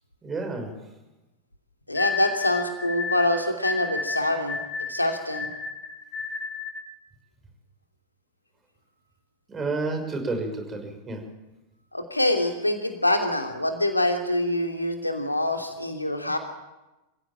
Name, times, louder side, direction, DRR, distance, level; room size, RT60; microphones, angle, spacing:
voice 1, 0.2-0.7 9.5-11.3, right 3 dB, 20° right, 5 dB, 6.0 m, -30 dB
voice 2, 1.9-4.6 4.9-5.5 11.9-16.4, left 1 dB, 85° left, 4 dB, 3.0 m, -25 dB
sound 1, 1.9-6.8, left 4 dB, 35° left, 7.1 m, -32 dB
26.0 x 16.0 x 8.9 m, 1.0 s
figure-of-eight pair, 90°, 0 cm